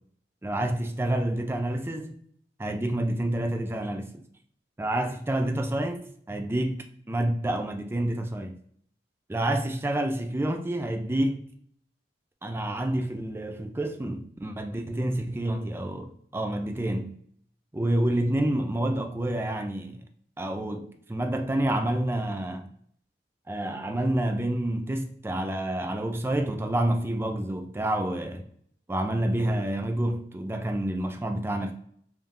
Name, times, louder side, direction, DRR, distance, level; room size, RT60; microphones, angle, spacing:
voice 1, 0.4-2.2 2.6-4.2 4.8-6.0 6.3-8.5 9.3-11.4 12.4-17.1 17.7-20.0 20.4-22.7 23.5-28.5 28.9-31.7, right 1 dB, 15° right, 0.4 m, -28 dB
3.6 x 2.7 x 3.4 m
head